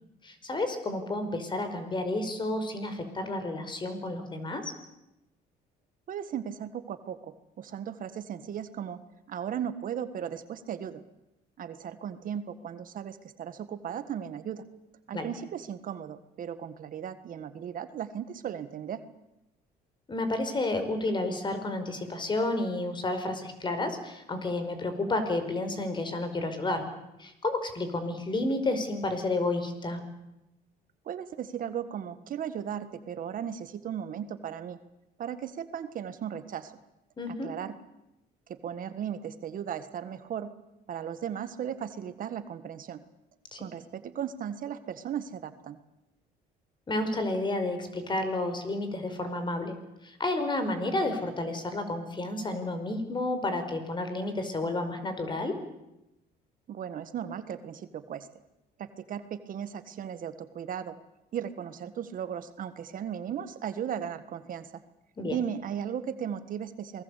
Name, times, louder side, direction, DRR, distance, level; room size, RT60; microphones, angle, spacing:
voice 1, 0.2-4.7 15.1-15.3 20.1-26.8 27.2-30.0 37.2-37.5 43.5-43.6 46.9-49.7 50.0-55.6 65.2-65.4, left 2 dB, 25° left, 9 dB, 5.1 m, -31 dB
voice 2, 6.1-9.0 9.3-11.0 11.6-14.6 15.1-19.0 31.0-34.8 35.2-36.7 37.3-37.7 38.5-40.5 40.9-43.0 43.6-45.8 56.7-58.3 58.8-60.9 61.3-64.8 65.2-67.0, right 9 dB, 55° right, 11 dB, 1.6 m, -36 dB
28.0 x 20.0 x 8.4 m, 0.91 s
cardioid pair, 110°, 17 cm